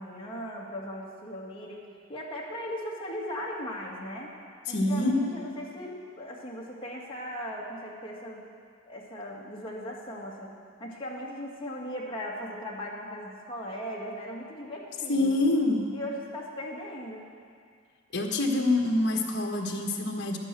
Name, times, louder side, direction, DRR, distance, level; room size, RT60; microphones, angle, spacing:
voice 1, 0.0-1.8 2.1-4.3 4.7-8.5 8.8-10.5 10.8-15.5 15.9-17.2, equal, 25° left, -4 dB, 2.2 m, -38 dB
voice 2, 4.7-5.2 15.1-15.8 18.1-20.4, left 2 dB, 55° left, 2 dB, 1.5 m, -26 dB
11.5 x 9.7 x 7.7 m, 2.2 s
head